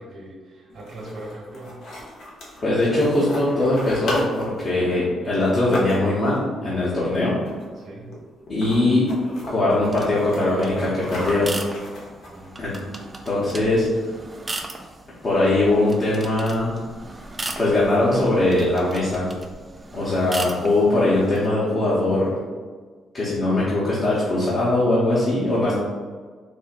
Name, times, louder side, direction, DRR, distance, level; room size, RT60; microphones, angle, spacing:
voice 1, 0.0-1.8 7.8-8.1 12.3-12.5, right 1 dB, 55° right, -3 dB, 1.1 m, -39 dB
sound 1, 0.7-6.3 7.4-7.8 8.1-8.2 8.5-9.5 10.0-12.6, left 1 dB, 70° left, 0.9 m, -36 dB
voice 2, 2.6-7.4 8.5-9.1 9.4-11.5 12.6-12.8 13.2-13.9 15.2-16.8 17.6-19.3 19.9-22.3 23.1-25.8, left 2 dB, 40° left, -8 dB, 0.9 m, -21 dB
sound 2, 9.8-21.5, right 2 dB, 20° right, 0.4 m, -37 dB
4.3 x 2.1 x 2.5 m, 1.5 s
cardioid pair, 90°, 0 cm